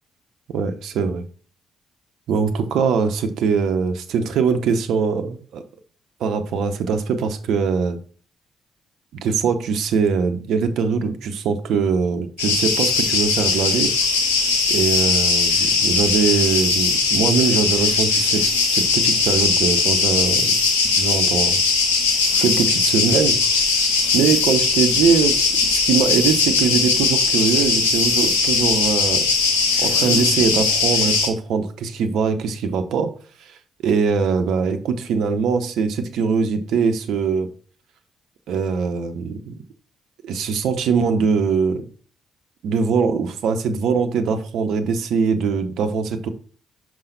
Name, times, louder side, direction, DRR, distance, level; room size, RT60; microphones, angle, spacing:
voice 1, 0.5-1.3 2.3-5.6 6.2-8.0 9.2-13.9 14.7-18.4 18.7-20.6 20.8-21.6 22.4-23.4 24.1-29.3 29.8-33.1 33.4-33.6 33.8-37.5 38.5-39.5 40.2-41.8 42.6-46.3, right 5 dB, 70° right, 7 dB, 0.8 m, -22 dB
sound 1, 12.4-31.3, left 4 dB, 90° left, 0.9 m, -19 dB
5.7 x 4.8 x 3.9 m, 0.41 s
hypercardioid pair, 45°, 0 cm